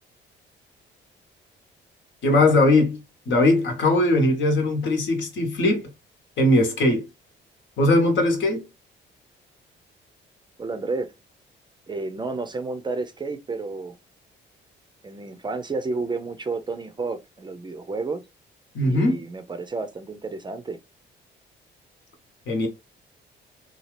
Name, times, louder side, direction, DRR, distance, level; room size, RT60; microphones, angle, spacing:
voice 1, 2.2-5.9 6.4-7.1 7.8-8.7 18.7-19.2 22.5-22.7, left 2 dB, 70° left, 1.2 m, -20 dB
voice 2, 10.6-11.1 11.9-14.0 15.0-18.2 18.8-20.8, right 3 dB, 25° right, 0.4 m, -31 dB
2.8 x 2.4 x 3.1 m
cardioid pair, 90°, 20 cm